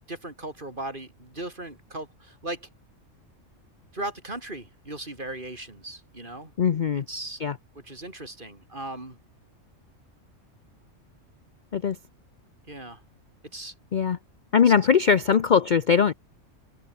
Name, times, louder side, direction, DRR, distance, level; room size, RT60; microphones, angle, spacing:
voice 1, 0.1-2.7 3.9-6.5 6.9-7.5 7.7-9.2 12.7-13.0 13.5-13.7 14.6-14.7, right 2 dB, 40° right, 4.6 m, -37 dB
voice 2, 6.6-7.0 7.4-7.5 11.7-12.0 13.9-14.2 14.5-16.1, left 6 dB, 45° left, 0.7 m, -20 dB
omnidirectional pair, 1.3 m